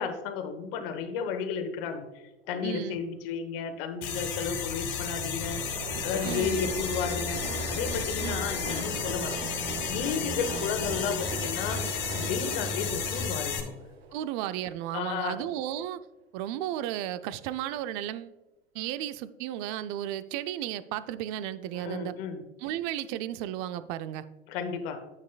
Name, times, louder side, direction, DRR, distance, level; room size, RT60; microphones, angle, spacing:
voice 1, 0.0-2.1 2.5-5.6 6.0-9.4 9.9-11.8 12.1-13.7 14.9-15.4 21.7-22.4 24.5-25.0, left 6 dB, 65° left, 8 dB, 1.2 m, -33 dB
voice 2, 2.6-3.0 6.2-6.5 8.2-8.4 14.1-16.0 16.3-18.3 18.7-22.2 22.6-24.2, right 12 dB, 55° right, 14 dB, 0.6 m, -34 dB
sound 1, 4.0-13.6, left 5 dB, 40° left, 2.1 m, -32 dB
Train, 5.1-14.8, right 4 dB, 90° right, 0.7 m, -41 dB
9.3 x 7.5 x 2.3 m, 1.1 s
hypercardioid pair, 80°, 30 cm